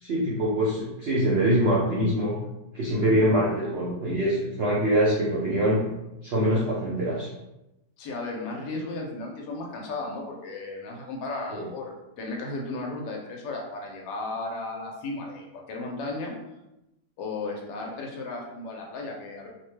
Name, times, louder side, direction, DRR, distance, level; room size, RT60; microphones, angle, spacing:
voice 1, 0.0-2.4 2.7-5.8 6.2-7.3 11.5-11.6, right 1 dB, 90° right, -6 dB, 0.5 m, -24 dB
voice 2, 8.0-16.3 17.2-19.5, left 2 dB, 85° left, -1 dB, 1.2 m, -35 dB
2.9 x 2.1 x 3.1 m, 0.93 s
omnidirectional pair, 1.8 m